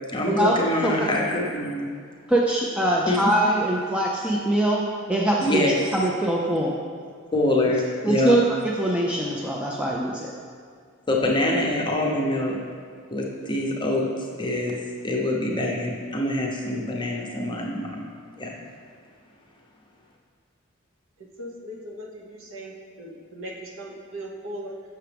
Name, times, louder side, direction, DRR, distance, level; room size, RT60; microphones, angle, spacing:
voice 1, 0.1-1.9 3.1-3.3 5.4-5.8 7.3-8.4 11.1-12.6 13.1-14.1 14.4-14.8 15.0-18.0 18.4-18.6, left 1 dB, 20° left, -1 dB, 0.8 m, -25 dB
voice 2, 2.3-4.8 5.1-6.7 8.1-10.3, right 1 dB, 5° right, -3 dB, 0.4 m, -23 dB
voice 3, 21.2-24.7, right 1 dB, 65° right, -2 dB, 1.0 m, -38 dB
6.7 x 6.0 x 3.4 m, 2.1 s
head